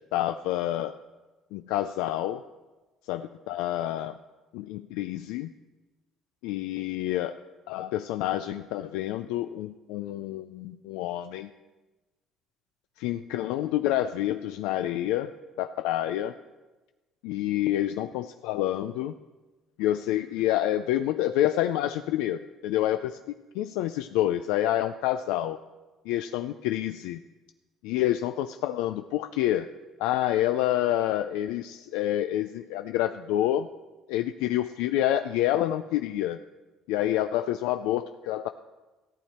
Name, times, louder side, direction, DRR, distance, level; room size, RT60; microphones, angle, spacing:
voice 1, 0.1-1.0 1.5-2.4 3.0-4.2 4.5-5.5 6.4-7.4 7.7-11.5 13.0-15.3 15.6-16.3 17.2-19.1 19.8-23.2 23.5-25.6 26.1-27.2 27.8-29.7 30.0-33.7 34.1-36.4 36.9-38.5, left 13 dB, 90° left, 9 dB, 0.4 m, -28 dB
14.5 x 9.1 x 4.3 m, 1.2 s
cardioid pair, 95°, 0 cm